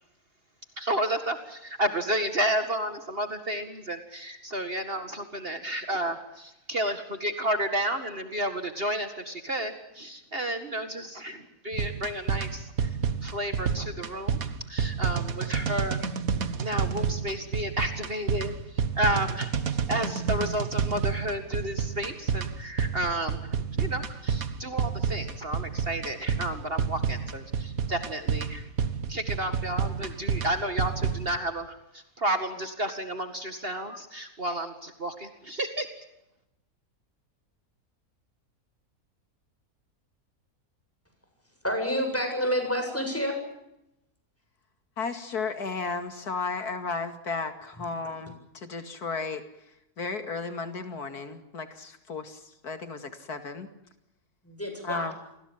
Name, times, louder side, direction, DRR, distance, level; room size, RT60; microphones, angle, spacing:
voice 1, 0.8-12.7 13.2-14.4 14.7-16.0 16.6-18.5 19.0-19.5 19.9-23.4 23.8-28.6 29.1-35.9, right 1 dB, 40° right, 8 dB, 2.2 m, -31 dB
sound 1, 11.7-31.4, right 6 dB, 65° right, 1.9 m, -30 dB
voice 2, 41.6-43.4 54.4-55.1, equal, 10° left, 5 dB, 7.7 m, -28 dB
voice 3, 45.0-49.4 50.0-53.7 54.8-55.1, left 4 dB, 90° left, 8 dB, 2.8 m, -34 dB
28.5 x 21.0 x 7.4 m, 0.85 s
omnidirectional pair, 1.6 m